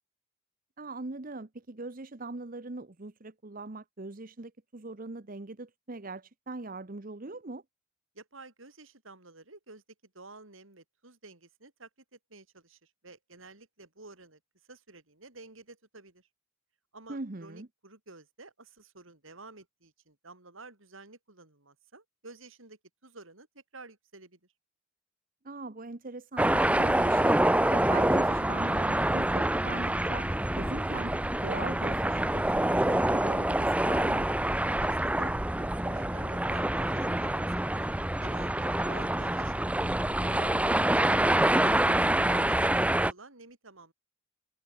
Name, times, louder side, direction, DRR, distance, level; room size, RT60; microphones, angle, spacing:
voice 1, 0.8-7.6 17.1-17.7 25.4-30.3 30.5-34.3 41.9-42.3, right 3 dB, 45° right, 1.0 m, -41 dB
voice 2, 8.1-14.4 14.7-16.3 16.9-24.4 34.8-40.8 41.2-43.9, right 3 dB, 85° right, 5.0 m, -51 dB
sound 1, 26.4-43.1, right 1 dB, 5° right, 0.7 m, -26 dB
head